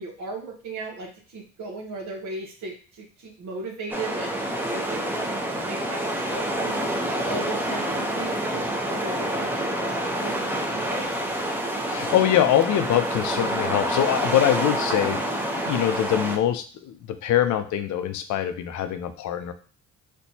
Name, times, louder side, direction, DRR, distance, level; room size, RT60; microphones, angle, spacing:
voice 1, 0.0-6.0 6.3-6.8 7.2-9.5 9.8-11.1, right 3 dB, 70° right, -1 dB, 0.9 m, -37 dB
sound 1, 3.9-16.4, right 1 dB, 5° right, 0.6 m, -27 dB
voice 2, 11.9-15.2 15.7-19.5, left 11 dB, 70° left, 9 dB, 0.5 m, -23 dB
4.3 x 2.2 x 2.7 m, 0.39 s
cardioid pair, 90°, 30 cm